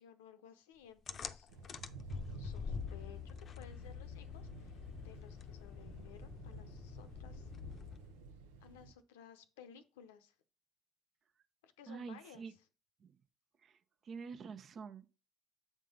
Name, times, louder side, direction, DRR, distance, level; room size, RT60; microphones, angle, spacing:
voice 1, 0.0-1.5 2.3-7.5 8.6-10.3 11.6-12.6, left 8 dB, 85° left, 0.7 m, -58 dB
sound 1, 1.1-8.2, left 7 dB, 45° left, 0.6 m, -46 dB
Thunder / Rain, 1.5-8.9, right 3 dB, 85° right, 0.7 m, -52 dB
voice 2, 11.9-12.5 13.0-13.1 13.6-13.8 14.0-15.1, right 5 dB, 50° right, 0.8 m, -47 dB
7.6 x 3.7 x 5.4 m
hypercardioid pair, 65°, 0 cm